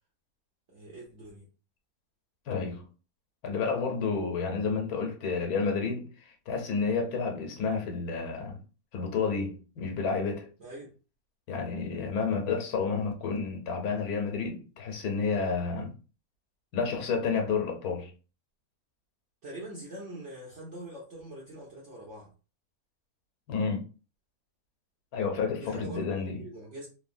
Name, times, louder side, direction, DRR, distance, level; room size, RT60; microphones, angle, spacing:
voice 1, 0.7-1.5 10.6-10.9 19.4-22.3 25.5-26.9, right 1 dB, 55° right, 1.0 m, -43 dB
voice 2, 2.5-2.8 3.4-8.6 8.9-10.5 11.5-15.9 16.7-18.1 23.5-23.8 25.1-26.4, left 5 dB, 80° left, 1.2 m, -30 dB
3.2 x 2.2 x 2.5 m
omnidirectional pair, 1.6 m